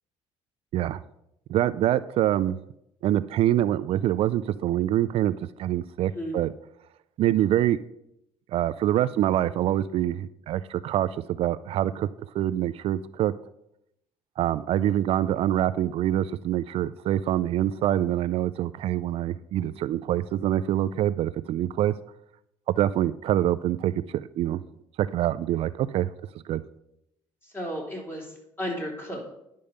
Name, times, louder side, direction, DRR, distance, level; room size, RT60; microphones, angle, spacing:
voice 1, 1.5-2.6 3.0-6.5 7.2-7.8 8.5-11.1 11.4-12.1 12.3-13.3 14.4-21.9 22.7-24.6 25.0-26.1 26.5-26.6, right 12 dB, 60° right, 15 dB, 0.4 m, -25 dB
voice 2, 6.0-6.4 27.4-29.2, equal, 20° left, -1 dB, 3.6 m, -34 dB
10.0 x 5.3 x 6.6 m, 0.81 s
cardioid pair, 110°, 11 cm